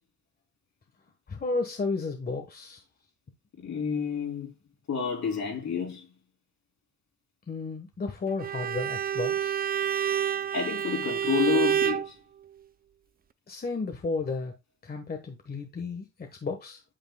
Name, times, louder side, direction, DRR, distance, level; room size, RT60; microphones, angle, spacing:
voice 1, 1.3-2.8 7.5-9.6 13.5-14.5 14.8-16.8, left 3 dB, 30° left, 1.3 m, -33 dB
voice 2, 3.6-4.6 4.9-6.1 10.5-12.2, left 6 dB, 65° left, 3.5 m, -29 dB
Bowed string instrument, 8.4-12.1, right 9 dB, 30° right, 0.5 m, -28 dB
9.0 x 7.2 x 2.2 m
cardioid pair, 90°, 30 cm